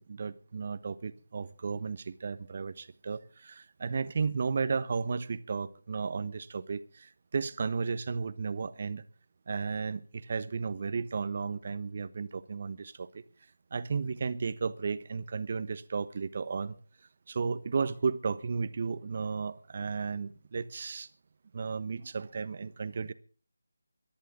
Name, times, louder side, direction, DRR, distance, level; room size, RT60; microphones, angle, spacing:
voice 1, 0.0-9.0 9.5-13.2 13.7-16.8 17.3-21.1 21.5-23.1, right 5 dB, 40° right, 14 dB, 1.1 m, -34 dB
25.0 x 11.0 x 3.8 m, 0.40 s
figure-of-eight pair, 170°, 0 cm